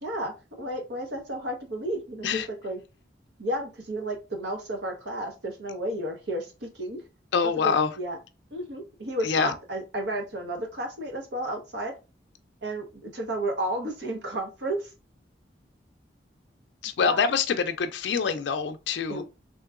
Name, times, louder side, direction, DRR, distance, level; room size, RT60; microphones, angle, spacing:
voice 1, 0.0-2.8 3.4-7.0 7.4-8.2 8.5-11.9 12.6-14.9 17.0-17.2 19.1-19.2, right 1 dB, 70° right, 1.0 m, -32 dB
voice 2, 7.3-7.9 9.2-9.5 16.8-19.2, left 5 dB, 80° left, 0.4 m, -25 dB
3.7 x 2.9 x 2.4 m
head